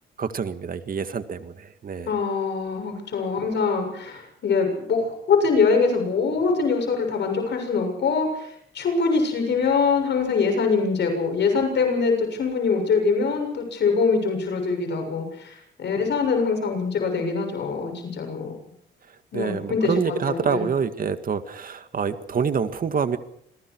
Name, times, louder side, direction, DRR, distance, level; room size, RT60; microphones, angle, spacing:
voice 1, 0.2-2.1 19.3-23.2, right 6 dB, 45° right, 10 dB, 2.1 m, -27 dB
voice 2, 2.1-8.5 8.7-18.5 19.3-19.9 20.3-20.6, left 4 dB, 60° left, 4 dB, 7.0 m, -23 dB
27.5 x 21.5 x 4.8 m, 0.71 s
cardioid pair, 90°, 20 cm